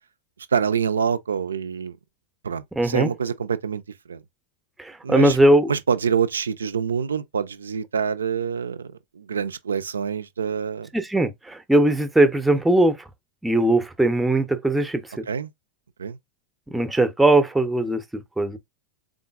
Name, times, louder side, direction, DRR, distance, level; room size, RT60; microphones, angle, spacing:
voice 1, 0.5-2.0 2.4-3.8 4.1-4.2 5.0-5.4 5.7-10.9 15.3-15.5 16.0-16.2, right 6 dB, 70° right, 0.4 m, -26 dB
voice 2, 2.8-3.1 4.8-5.7 10.9-13.0 13.4-15.3 16.7-18.6, right 1 dB, 5° right, 0.6 m, -20 dB
3.8 x 3.6 x 2.3 m
figure-of-eight pair, 90°, 0 cm